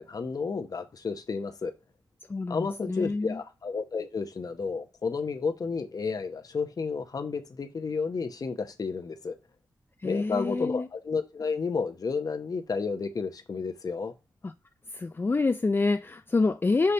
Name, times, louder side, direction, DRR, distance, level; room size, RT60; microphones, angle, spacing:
voice 1, 0.0-1.7 2.5-9.4 10.0-14.1, left 4 dB, 50° left, 0.9 m, -31 dB
voice 2, 2.3-3.4 10.0-10.9 14.4-14.5 14.9-16.9, left 3 dB, 30° left, 0.4 m, -27 dB
5.7 x 3.3 x 5.4 m
wide cardioid pair, 80°, 8 cm